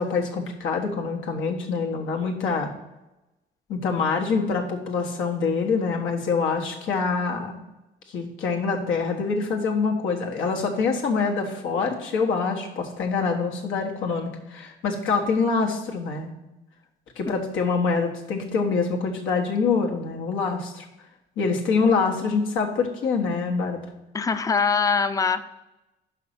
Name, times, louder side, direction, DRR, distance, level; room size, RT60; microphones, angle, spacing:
voice 1, 0.0-2.7 3.7-7.6 8.1-16.3 17.2-20.8 21.4-23.8, left 4 dB, 85° left, 1 dB, 1.4 m, -25 dB
voice 2, 24.1-25.4, left 5 dB, 15° left, 11 dB, 0.5 m, -22 dB
5.7 x 5.3 x 5.9 m, 0.98 s
cardioid pair, 90°, 20 cm